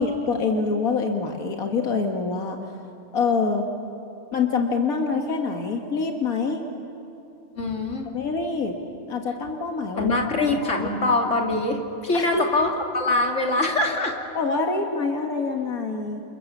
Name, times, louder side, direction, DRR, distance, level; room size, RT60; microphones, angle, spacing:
voice 1, 0.0-2.6 3.1-3.7 4.3-6.6 8.1-8.8 9.1-10.9 12.1-12.5 14.4-16.2, left 4 dB, 85° left, 3 dB, 2.1 m, -25 dB
voice 2, 7.5-8.1 9.9-14.2, left 2 dB, 60° left, 1 dB, 3.0 m, -24 dB
29.0 x 28.5 x 7.2 m, 2.8 s
omnidirectional pair, 1.5 m